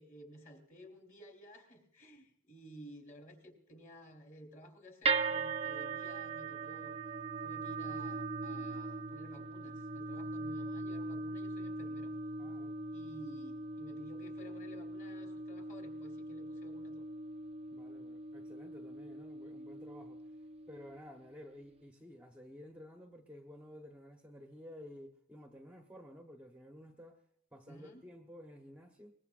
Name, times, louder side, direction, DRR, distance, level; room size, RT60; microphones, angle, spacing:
voice 1, 0.0-6.9 7.4-12.1 12.9-17.1 27.7-28.0, equal, 35° left, 3.7 m, -54 dB
sound 1, 5.0-21.3, right 3 dB, 25° right, 0.6 m, -40 dB
voice 2, 12.4-12.8 17.7-20.2 20.7-27.2 27.5-29.1, equal, 5° right, 1.0 m, -53 dB
22.5 x 21.0 x 2.5 m
head